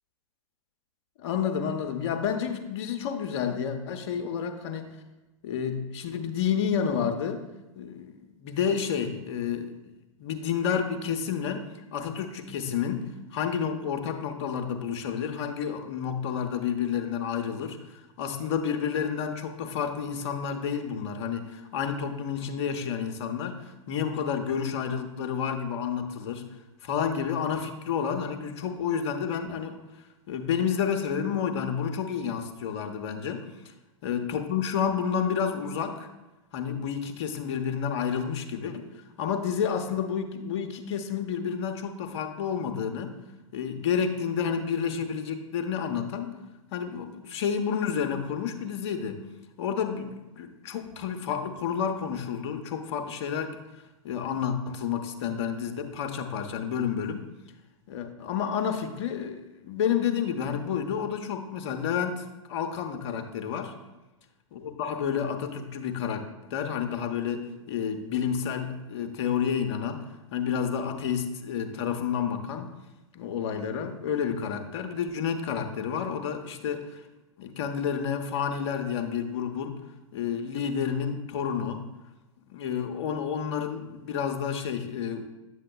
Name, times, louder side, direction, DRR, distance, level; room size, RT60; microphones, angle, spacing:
voice 1, 1.2-4.9 5.4-7.4 7.7-9.9 10.2-11.6 11.9-26.4 26.8-29.8 30.3-33.4 34.0-36.1 36.5-38.9 39.2-43.2 43.5-46.4 46.7-49.2 49.6-53.6 54.0-57.3 57.9-63.7 64.5-66.2 66.5-70.0 70.3-72.7 73.1-77.0 77.4-79.8 80.1-81.8 82.5-85.2, left 7 dB, 55° left, 6 dB, 0.8 m, -30 dB
8.5 x 7.4 x 2.3 m, 1.1 s
figure-of-eight pair, 105°, 18 cm